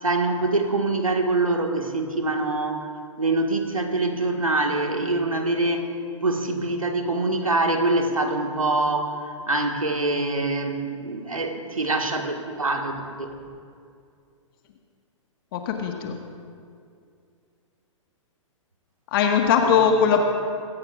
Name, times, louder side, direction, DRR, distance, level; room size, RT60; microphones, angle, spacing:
voice 1, 0.0-13.4 19.6-19.8, right 2 dB, 85° right, 4 dB, 1.7 m, -25 dB
voice 2, 15.5-16.2 19.1-20.2, left 7 dB, 45° left, 3 dB, 1.6 m, -20 dB
25.0 x 17.0 x 2.5 m, 2.3 s
figure-of-eight pair, 120°, 17 cm